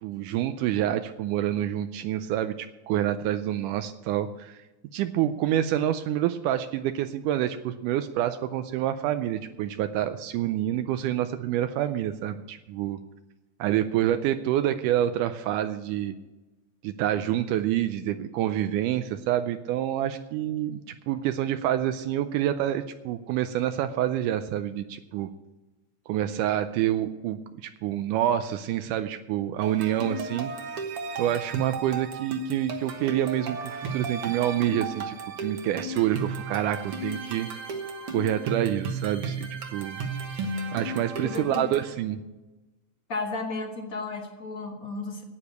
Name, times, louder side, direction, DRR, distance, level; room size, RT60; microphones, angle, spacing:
voice 1, 0.0-4.6 4.9-13.0 13.6-16.1 16.8-20.8 21.1-25.3 26.1-30.5 31.2-37.5 38.1-40.0 40.7-42.2, right 12 dB, 80° right, 9 dB, 2.1 m, -27 dB
sound 1, 29.6-41.9, right 3 dB, 55° right, 1.8 m, -34 dB
voice 2, 41.2-41.7 43.1-45.2, left 3 dB, 40° left, 2 dB, 1.2 m, -33 dB
9.9 x 8.7 x 8.1 m, 1.1 s
omnidirectional pair, 3.7 m